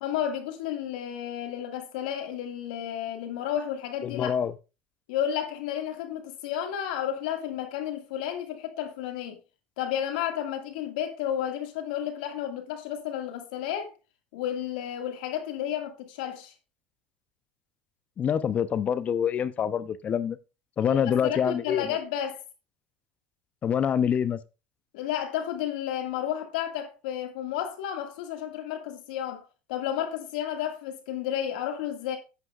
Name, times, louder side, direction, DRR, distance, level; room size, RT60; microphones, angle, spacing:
voice 1, 0.0-4.4 5.1-9.4 9.8-13.9 14.3-16.5 20.8-22.4 24.9-32.2, left 10 dB, 85° left, 2.0 m, -32 dB
voice 2, 4.0-4.5 18.2-20.4 20.8-22.0 23.6-24.4, left 8 dB, 30° left, 0.7 m, -26 dB
11.0 x 8.2 x 2.4 m
supercardioid pair, 120°, 4 cm